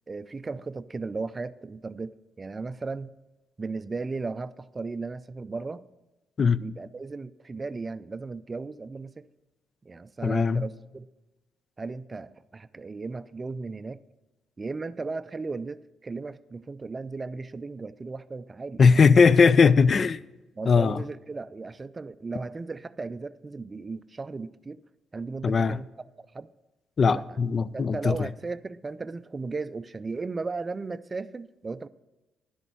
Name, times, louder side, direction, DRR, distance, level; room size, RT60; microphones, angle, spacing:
voice 1, 0.1-3.1 3.6-5.9 6.6-9.3 9.8-11.1 11.8-14.0 14.6-19.2 20.6-24.8 25.1-25.9 26.2-26.5 27.1-27.4 27.7-31.9, right 3 dB, 30° right, 0.4 m, -36 dB
voice 2, 10.2-10.6 18.8-20.2 20.7-21.0 25.4-25.8 27.0-28.1, left 5 dB, 45° left, 0.3 m, -19 dB
11.0 x 6.7 x 6.2 m
cardioid pair, 90°, 0 cm